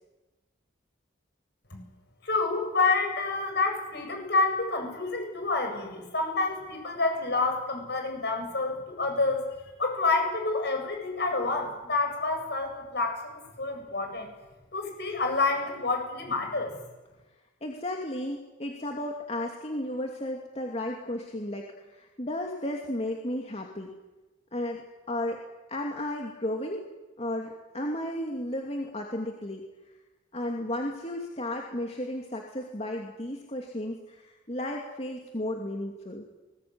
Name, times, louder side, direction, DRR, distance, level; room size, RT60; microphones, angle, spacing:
voice 1, 2.2-9.4 9.8-14.3 14.7-16.7, left 3 dB, 60° left, 4 dB, 8.0 m, -28 dB
voice 2, 17.6-23.9 24.5-25.4 25.7-26.8 27.2-29.6 30.3-36.2, left 1 dB, 35° left, 1 dB, 2.7 m, -34 dB
29.0 x 21.0 x 9.7 m, 1.1 s
head